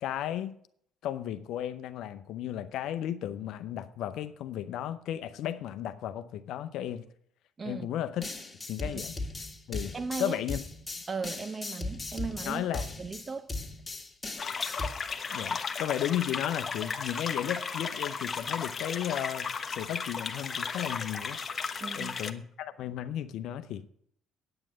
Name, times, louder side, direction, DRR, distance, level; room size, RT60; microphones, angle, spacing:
voice 1, 0.0-0.6 1.0-7.1 7.6-8.3 8.7-9.2 9.7-10.6 12.4-12.9 15.3-21.4 21.9-23.9, left 11 dB, 70° left, 0.7 m, -34 dB
sound 1, 8.2-14.9, left 2 dB, 20° left, 1.9 m, -38 dB
voice 2, 9.9-10.4 11.1-12.7 13.0-13.5 21.8-22.2, right 4 dB, 40° right, 0.7 m, -36 dB
sound 2, 14.4-22.3, left 5 dB, 45° left, 1.1 m, -35 dB
9.1 x 8.8 x 6.3 m
hypercardioid pair, 55°, 0 cm